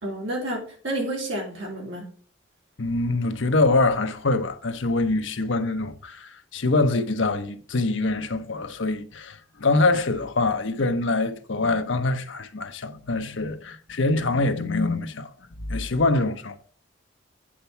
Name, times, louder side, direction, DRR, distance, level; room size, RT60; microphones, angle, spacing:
voice 1, 0.0-2.1, right 1 dB, 65° right, 3.3 m, -30 dB
voice 2, 2.8-15.3 15.7-16.6, left 2 dB, 70° left, 0.9 m, -24 dB
8.8 x 4.5 x 5.6 m
head